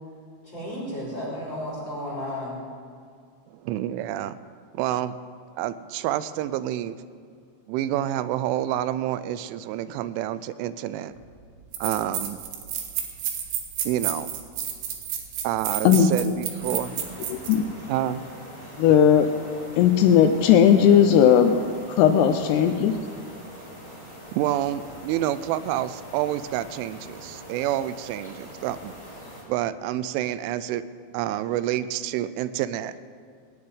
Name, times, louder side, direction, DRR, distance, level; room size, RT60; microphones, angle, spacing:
voice 1, 0.4-2.6, left 1 dB, 30° left, -5 dB, 3.1 m, -33 dB
voice 2, 3.5-4.4 4.7-5.2 5.6-7.0 7.7-11.1 11.8-12.4 13.9-14.3 15.4-17.0 17.9-18.3 24.3-28.9 29.5-30.8 31.1-32.9, right 12 dB, 85° right, 15 dB, 3.0 m, -28 dB
sound 1, 11.2-11.3 11.7-17.6, right 9 dB, 70° right, 3.3 m, -31 dB
voice 3, 15.8-16.3 17.3-17.7 18.8-19.3 19.8-21.6 21.9-23.0, left 8 dB, 85° left, 6 dB, 2.3 m, -17 dB
sound 2, 16.6-29.4, equal, 10° right, 2.3 m, -43 dB
19.0 x 6.7 x 9.4 m, 2.1 s
omnidirectional pair, 5.5 m